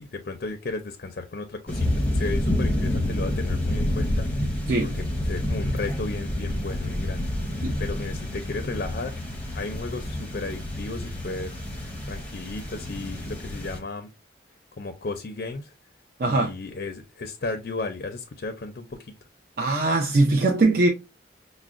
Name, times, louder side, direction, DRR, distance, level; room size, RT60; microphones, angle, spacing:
voice 1, 0.0-4.5 4.8-4.9 5.2-9.3 9.5-14.1 14.8-15.7 16.3-19.1, left 3 dB, 55° left, 0.4 m, -34 dB
sound 1, 1.7-13.8, left 1 dB, 10° left, 0.7 m, -28 dB
voice 2, 19.6-20.9, right 2 dB, 50° right, 0.5 m, -21 dB
5.7 x 2.1 x 2.4 m
head